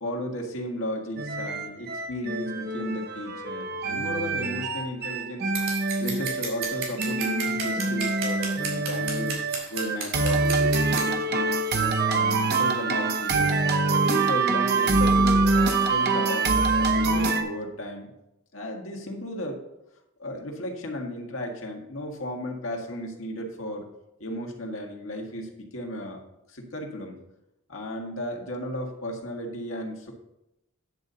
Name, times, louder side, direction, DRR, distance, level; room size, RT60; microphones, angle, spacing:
voice 1, 0.0-5.5 6.0-9.4 9.7-13.5 14.1-18.1 18.5-19.6 20.2-23.8 24.2-26.2 26.5-27.2 27.7-30.1, left 1 dB, 85° left, 1 dB, 1.7 m, -34 dB
sound 1, 1.2-17.4, right 3 dB, 55° right, 0.8 m, -25 dB
Scissors, 5.6-11.1, right 4 dB, 75° right, 3.5 m, -33 dB
10.5 x 4.0 x 6.8 m, 0.88 s
head